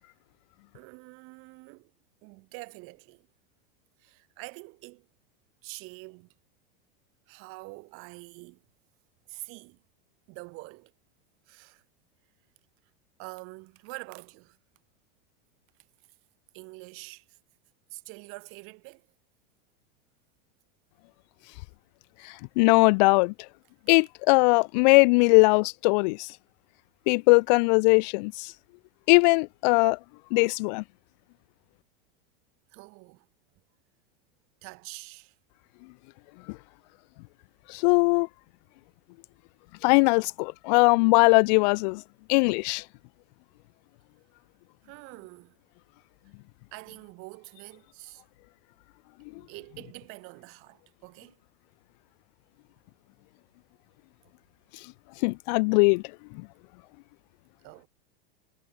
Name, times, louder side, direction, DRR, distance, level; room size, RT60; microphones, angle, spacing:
voice 1, 0.7-1.9 2.2-3.3 4.0-5.1 5.6-6.3 7.3-8.6 9.3-9.8 10.3-10.9 11.5-11.8 13.2-14.6 16.5-17.4 17.9-19.1 32.7-33.3 34.6-35.4 44.8-45.6 46.7-48.2 49.3-51.4 57.6-57.9, right 28 dB, 50° right, 7.8 m, -45 dB
voice 2, 22.2-23.3 23.9-26.3 27.1-28.5 29.1-30.0 30.3-30.8 37.7-38.3 39.8-42.0 42.3-42.8 55.2-56.0, left 29 dB, 50° left, 0.5 m, -20 dB
supercardioid pair, 145°, 29 cm